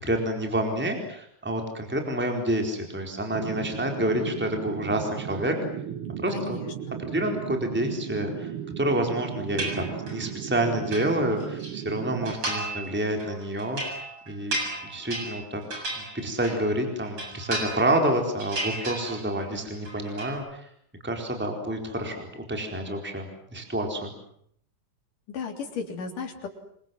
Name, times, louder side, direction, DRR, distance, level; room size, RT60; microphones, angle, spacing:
voice 1, 0.0-5.6 6.2-6.6 7.0-8.5 8.8-14.0 14.3-14.6 14.8-15.6 16.0-20.6 21.0-23.3 23.5-24.1, right 1 dB, 5° right, 3 dB, 4.2 m, -28 dB
sound 1, 3.3-12.4, right 9 dB, 55° right, 1.7 m, -36 dB
voice 2, 6.3-7.0 25.3-26.5, left 5 dB, 85° left, 4 dB, 5.0 m, -35 dB
sound 2, 9.6-10.3 10.6-11.7 12.2-12.9 13.2-16.7 17.0-18.1 18.4-19.5 19.7-20.4, right 2 dB, 40° right, 8.0 m, -34 dB
27.5 x 24.0 x 7.8 m, 0.67 s
omnidirectional pair, 3.6 m